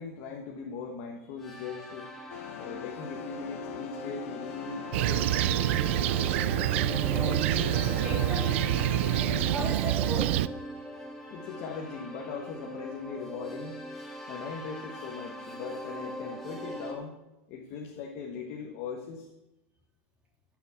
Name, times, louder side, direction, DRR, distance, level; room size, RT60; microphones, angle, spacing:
voice 1, 0.0-2.1 2.6-6.3 10.7-10.8 11.3-13.8 14.3-17.2 17.5-19.3, left 5 dB, 40° left, 1 dB, 1.3 m, -40 dB
sound 1, 1.4-16.9, equal, 5° left, 1.5 m, -41 dB
sound 2, 2.3-9.7, left 12 dB, 80° left, 0.5 m, -40 dB
Fixed-wing aircraft airplane, 4.9-10.5, right 15 dB, 60° right, 0.4 m, -27 dB
voice 2, 7.7-8.7 9.5-10.5, right 2 dB, 15° right, -2 dB, 3.0 m, -37 dB
13.0 x 6.1 x 7.1 m, 0.98 s
supercardioid pair, 170°, 7 cm